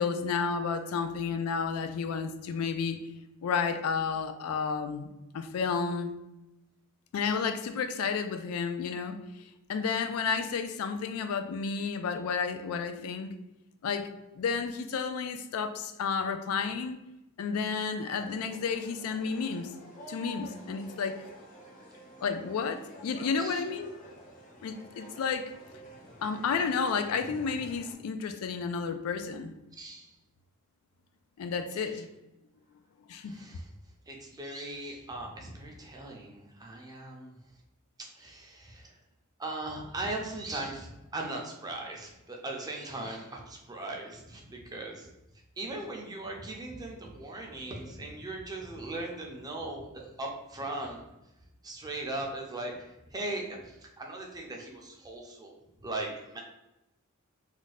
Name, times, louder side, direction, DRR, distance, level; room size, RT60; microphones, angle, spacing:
voice 1, 0.0-3.0 3.4-5.1 5.3-6.2 7.1-13.4 13.8-17.0 17.4-19.7 20.1-21.2 22.2-23.9 24.6-25.5 26.2-29.5 31.4-32.1 33.1-33.4, left 5 dB, 80° left, 8 dB, 0.3 m, -31 dB
sound 1, 18.1-27.9, equal, 40° left, 0.7 m, -49 dB
voice 2, 29.7-30.1 31.8-31.9 33.2-33.7 34.1-37.4 38.0-39.0 39.4-45.1 45.6-51.0 51.6-55.5 55.8-56.4, right 2 dB, 20° right, 0 dB, 0.5 m, -39 dB
2.5 x 2.2 x 4.0 m, 0.93 s
head